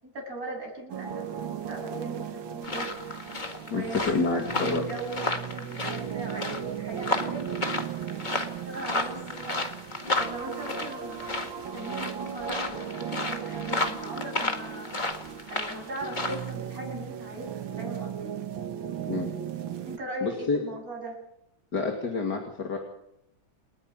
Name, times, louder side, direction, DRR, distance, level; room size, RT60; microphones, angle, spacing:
voice 1, 0.0-2.9 3.6-7.6 8.1-8.2 8.7-9.6 10.2-12.8 13.2-15.2 15.5-18.3 19.9-21.2, right 2 dB, 45° right, -1 dB, 8.2 m, -39 dB
sound 1, 0.9-20.0, right 8 dB, 90° right, 2.1 m, -37 dB
sound 2, 2.6-16.5, left 2 dB, 25° left, 2.0 m, -33 dB
voice 2, 3.7-4.8 19.1-19.3 20.2-20.6 21.7-22.8, left 4 dB, 55° left, 1 dB, 3.0 m, -28 dB
28.5 x 9.9 x 9.9 m, 0.78 s
omnidirectional pair, 2.1 m